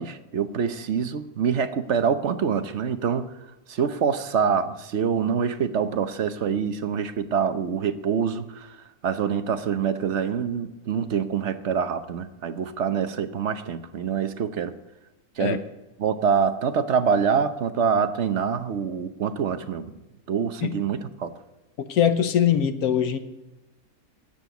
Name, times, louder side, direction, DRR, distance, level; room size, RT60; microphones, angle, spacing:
voice 1, 0.0-3.3 3.7-8.7 9.0-14.7 15.4-15.6 16.0-19.9 20.3-21.3, right 7 dB, 55° right, 11 dB, 1.1 m, -25 dB
voice 2, 21.9-23.2, left 9 dB, 90° left, 10 dB, 1.4 m, -21 dB
13.5 x 9.1 x 8.1 m, 1.1 s
omnidirectional pair, 1.5 m